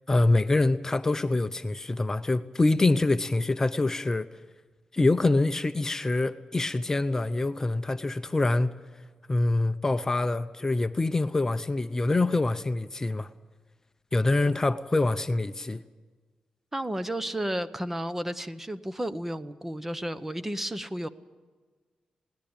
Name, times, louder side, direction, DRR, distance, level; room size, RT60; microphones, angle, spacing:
voice 1, 0.1-4.3 4.9-8.7 9.3-13.3 14.1-15.8, left 2 dB, 20° left, 10 dB, 0.7 m, -25 dB
voice 2, 16.7-21.1, right 1 dB, 10° right, 13 dB, 0.9 m, -32 dB
21.0 x 18.5 x 8.9 m, 1.4 s
wide cardioid pair, 110°, 2 cm